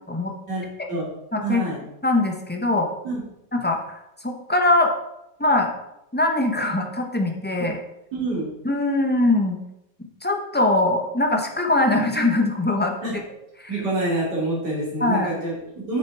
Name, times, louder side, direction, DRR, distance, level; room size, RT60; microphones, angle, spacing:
voice 1, 0.5-1.1 1.4-1.8 3.0-3.2 7.6-7.7 8.1-8.5 13.0-13.2 13.7-16.0, right 2 dB, 70° right, -6 dB, 3.4 m, -27 dB
voice 2, 2.0-2.9 3.5-4.9 5.4-5.7 6.1-7.8 8.6-9.6 10.2-12.9 15.0-15.3, left 2 dB, 10° left, 2 dB, 0.6 m, -21 dB
8.4 x 6.4 x 4.7 m, 0.85 s
omnidirectional pair, 1.9 m